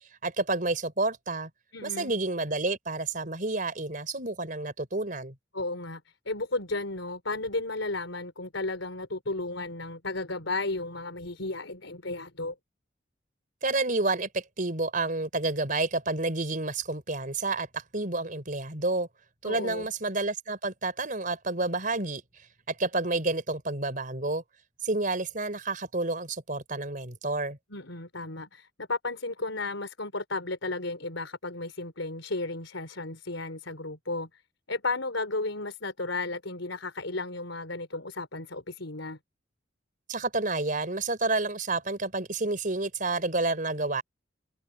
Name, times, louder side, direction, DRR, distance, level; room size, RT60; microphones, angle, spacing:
voice 1, 0.2-1.5 1.8-5.3 13.6-19.1 19.4-22.2 22.7-24.4 24.8-27.6 40.1-44.0, right 2 dB, 45° right, 4.5 m, -29 dB
voice 2, 1.7-2.1 5.5-6.0 6.3-12.5 19.4-19.9 27.7-34.4 34.7-39.2, left 2 dB, 85° left, 4.2 m, -34 dB
head